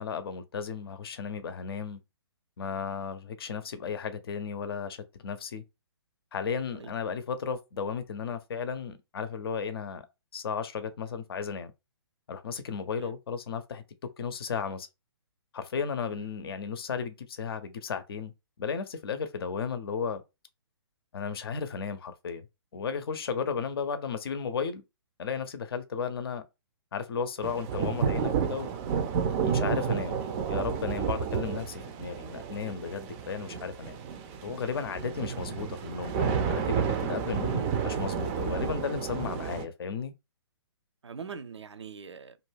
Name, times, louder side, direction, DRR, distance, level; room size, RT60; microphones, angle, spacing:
voice 1, 0.0-2.0 2.6-5.6 6.3-10.0 10.3-11.7 12.3-13.8 14.2-14.9 15.5-18.3 18.6-20.2 21.1-22.5 22.7-24.8 25.2-26.4 26.9-28.7 29.4-30.2 30.5-34.0 34.4-40.1, left 6 dB, 60° left, 0.6 m, -34 dB
sound 1, 27.4-39.7, right 7 dB, 25° right, 0.4 m, -31 dB
voice 2, 41.0-42.4, right 6 dB, 85° right, 0.4 m, -43 dB
2.5 x 2.2 x 3.3 m
figure-of-eight pair, 130°, 14 cm